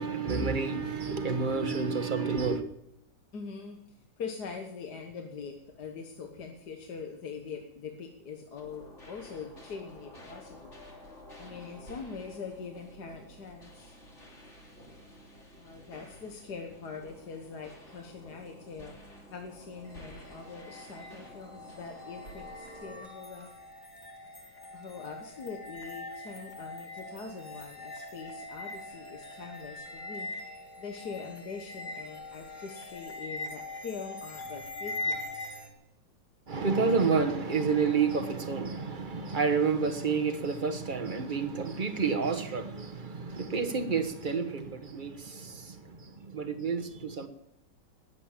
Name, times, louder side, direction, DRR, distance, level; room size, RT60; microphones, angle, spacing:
voice 1, 0.0-2.6 36.5-47.3, right 5 dB, 30° right, 1.2 m, -29 dB
voice 2, 3.3-10.7 11.4-14.0 15.6-18.9 19.3-23.5 24.7-35.3, left 5 dB, 60° left, 1.8 m, -43 dB
sound 1, 8.6-22.9, equal, 40° left, 3.5 m, -51 dB
sound 2, 19.8-35.7, left 2 dB, 25° left, 2.8 m, -42 dB
20.0 x 8.6 x 7.3 m
omnidirectional pair, 2.0 m